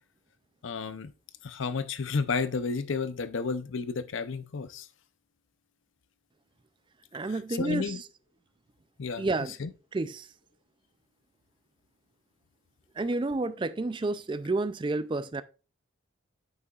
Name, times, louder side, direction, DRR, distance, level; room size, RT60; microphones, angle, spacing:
voice 1, 0.6-1.1 1.4-4.9 7.6-8.0 9.0-9.3 9.6-9.7, left 4 dB, 65° left, 0.6 m, -31 dB
voice 2, 7.1-8.0 9.2-9.5 9.9-10.3 13.0-15.4, right 2 dB, 25° right, 0.3 m, -30 dB
8.9 x 6.7 x 2.4 m
head